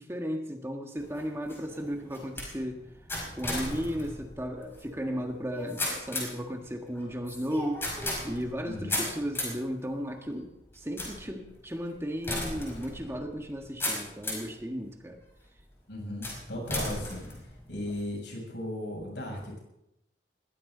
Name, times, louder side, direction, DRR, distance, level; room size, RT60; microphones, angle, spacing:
voice 1, 0.0-2.8 3.4-7.9 8.2-15.2, equal, 15° right, 3 dB, 1.6 m, -35 dB
sound 1, 1.0-14.6 15.1-15.6 16.2-18.0, left 1 dB, 15° left, 5.1 m, -37 dB
voice 2, 8.6-9.1 15.9-17.3 17.7-19.6, left 1 dB, 80° left, -1 dB, 7.1 m, -36 dB
21.0 x 16.5 x 4.0 m, 0.85 s
head